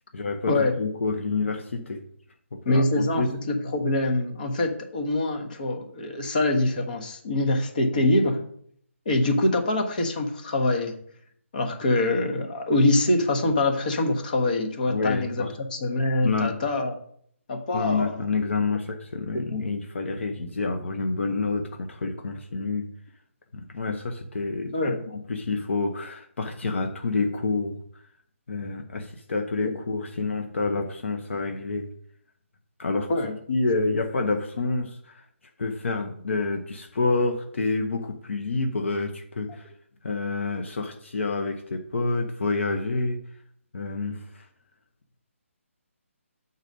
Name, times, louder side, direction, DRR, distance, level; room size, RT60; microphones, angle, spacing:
voice 1, 0.1-2.0 2.5-3.3 14.9-15.5 16.2-16.5 17.7-22.9 23.5-24.7 25.3-27.8 28.5-31.9 32.8-33.1 33.5-35.2 35.6-39.7 40.0-43.2 43.7-44.4, left 3 dB, 60° left, 5 dB, 0.8 m, -28 dB
voice 2, 2.6-8.4 9.0-11.0 11.5-16.9 17.5-18.2 19.3-19.7 24.7-25.0 33.1-33.3, left 2 dB, 35° left, 4 dB, 1.1 m, -24 dB
7.8 x 4.0 x 5.3 m, 0.64 s
hypercardioid pair, 170°, 8 cm